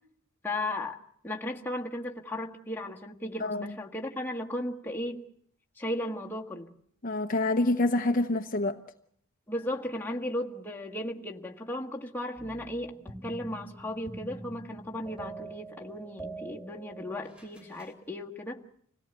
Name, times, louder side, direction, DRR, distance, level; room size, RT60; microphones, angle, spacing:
voice 1, 0.4-1.0 1.2-5.2 5.8-6.7 9.5-18.6, left 1 dB, 10° left, 1.7 m, -36 dB
voice 2, 3.4-3.7 7.0-8.8, left 2 dB, 40° left, 0.9 m, -27 dB
sound 1, 12.4-18.0, right 2 dB, 5° right, 2.9 m, -45 dB
26.5 x 17.5 x 8.2 m
head